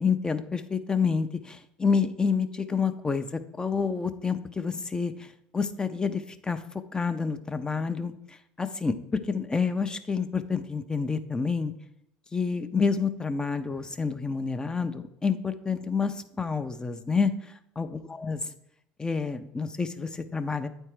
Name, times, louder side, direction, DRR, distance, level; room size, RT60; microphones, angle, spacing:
voice 1, 0.0-5.3 5.5-6.6 6.9-11.7 12.3-18.4 19.0-20.7, left 5 dB, 15° left, 9 dB, 0.6 m, -28 dB
8.6 x 4.4 x 4.9 m, 0.78 s
hypercardioid pair, 85°, 4 cm